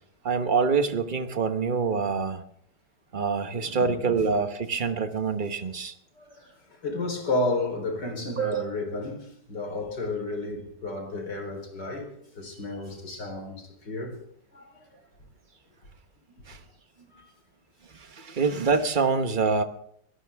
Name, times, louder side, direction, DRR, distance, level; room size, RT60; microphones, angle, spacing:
voice 1, 0.2-2.4 3.1-5.9 8.4-8.7 16.5-16.6 17.9-19.6, right 5 dB, 30° right, 1.2 m, -26 dB
voice 2, 3.5-4.3 6.2-12.1 12.3-14.2 14.5-14.8 17.1-17.3, left 2 dB, 85° left, 4.7 m, -32 dB
23.0 x 17.5 x 3.5 m
omnidirectional pair, 1.8 m